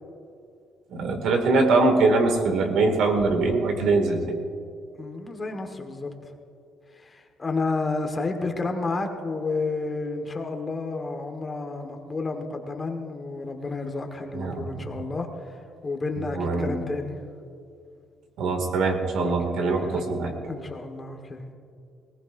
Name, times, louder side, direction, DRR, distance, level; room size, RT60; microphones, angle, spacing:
voice 1, 0.9-4.2 14.3-14.8 16.2-16.7 18.4-20.3, right 3 dB, 70° right, 4 dB, 2.2 m, -23 dB
voice 2, 5.0-6.3 6.9-17.1 19.2-19.3 19.8-20.0 20.5-21.4, left 3 dB, 25° left, 4 dB, 1.4 m, -31 dB
19.5 x 18.5 x 2.6 m, 2.4 s
cardioid pair, 120°, 0 cm